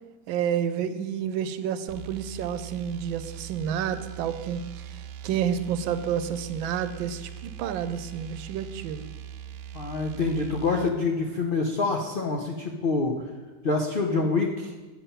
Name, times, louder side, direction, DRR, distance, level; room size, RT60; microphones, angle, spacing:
voice 1, 0.3-4.9 5.2-9.1, right 8 dB, 90° right, 11 dB, 1.4 m, -30 dB
sound 1, 1.9-11.0, right 10 dB, 75° right, 1.1 m, -41 dB
voice 2, 9.7-13.1 13.6-14.7, left 3 dB, 75° left, 1 dB, 0.5 m, -26 dB
8.2 x 7.3 x 5.6 m, 1.2 s
omnidirectional pair, 2.1 m